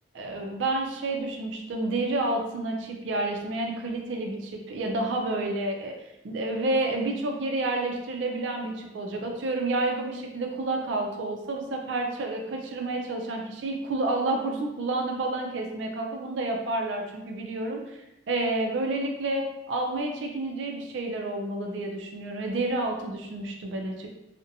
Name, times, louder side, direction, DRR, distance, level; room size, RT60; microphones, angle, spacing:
voice 1, 0.1-6.0 6.2-18.0 18.3-24.1, right 2 dB, 75° right, 2 dB, 0.4 m, -29 dB
2.5 x 2.1 x 2.6 m, 0.91 s
head